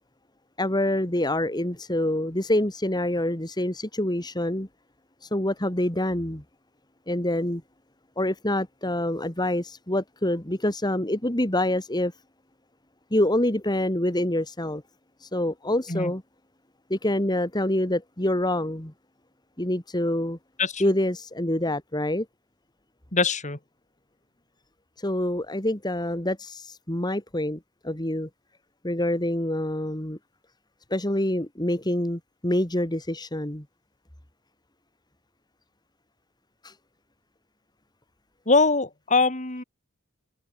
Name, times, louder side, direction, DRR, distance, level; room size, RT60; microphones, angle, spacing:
voice 1, 0.6-4.7 5.2-6.4 7.1-7.6 8.2-12.1 13.1-14.8 15.2-16.2 16.9-18.9 19.6-20.4 20.8-22.3 25.0-28.3 28.8-30.2 30.9-33.6 36.6-36.7, left 1 dB, 20° left, 2.7 m, -26 dB
voice 2, 23.1-23.6 38.5-39.6, left 3 dB, 35° left, 3.6 m, -22 dB
head